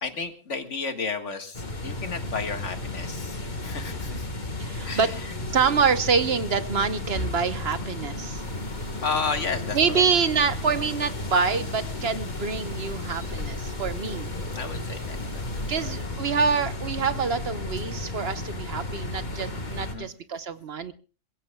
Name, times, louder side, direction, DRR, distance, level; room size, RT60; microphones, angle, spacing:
voice 1, 0.0-4.2 4.8-5.1 9.0-10.0 14.5-15.6 19.8-20.1, left 4 dB, 70° left, 6 dB, 2.1 m, -32 dB
sound 1, 1.5-19.9, left 2 dB, 35° left, 1.6 m, -33 dB
voice 2, 4.6-5.2 5.5-8.4 9.7-14.3 15.7-20.9, right 5 dB, 55° right, 11 dB, 1.2 m, -26 dB
sound 2, 8.3-16.0, equal, 90° right, 7.8 m, -46 dB
27.0 x 16.0 x 2.3 m, 0.36 s
omnidirectional pair, 1.3 m